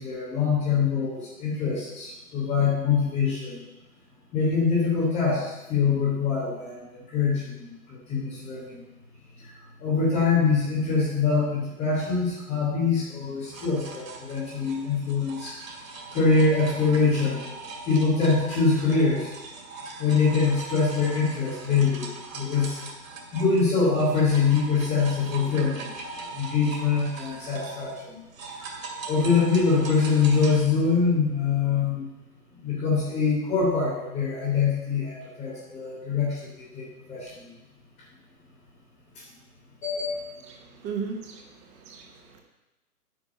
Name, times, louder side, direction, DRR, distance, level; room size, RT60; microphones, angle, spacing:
voice 1, 0.0-3.6 4.3-8.8 9.4-9.5 9.8-15.5 16.1-17.4 17.9-19.3 20.0-22.8 23.3-25.9 26.3-28.2 28.5-28.7 29.1-32.1 32.6-37.5 39.1-39.2 39.8-40.4, left 5 dB, ahead, -13 dB, 0.5 m, -24 dB
sound 1, 13.5-23.7 23.9-30.6, right 3 dB, 55° right, 2.3 m, -40 dB
voice 2, 40.5-42.4, right 6 dB, 15° right, 3 dB, 0.9 m, -37 dB
8.9 x 5.9 x 7.9 m, 1.0 s
figure-of-eight pair, 125°, 47 cm